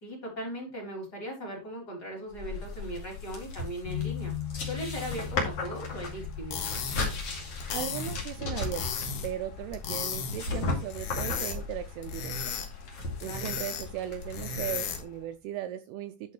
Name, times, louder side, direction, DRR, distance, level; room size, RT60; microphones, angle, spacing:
voice 1, 0.0-4.3 4.7-6.6 13.2-13.5, right 1 dB, 25° left, -1 dB, 3.4 m, -38 dB
sound 1, 2.3-15.0, left 3 dB, 40° left, 2.8 m, -36 dB
sound 2, 3.9-10.9, left 8 dB, 85° left, 3.7 m, -41 dB
sound 3, 6.3-15.2, left 6 dB, 65° left, 3.2 m, -36 dB
voice 2, 7.7-12.3 13.2-16.3, right 11 dB, 80° right, 9 dB, 2.4 m, -37 dB
11.5 x 5.7 x 3.2 m, 0.26 s
omnidirectional pair, 5.1 m